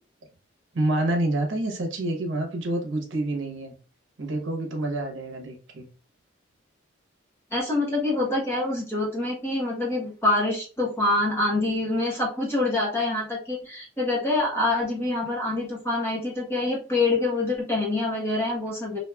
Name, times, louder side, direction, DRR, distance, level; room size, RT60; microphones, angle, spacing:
voice 1, 0.7-3.8 4.2-5.9, right 1 dB, 70° right, 2 dB, 0.9 m, -27 dB
voice 2, 7.5-19.0, left 2 dB, 10° left, -4 dB, 1.0 m, -26 dB
3.0 x 2.7 x 2.2 m, 0.36 s
head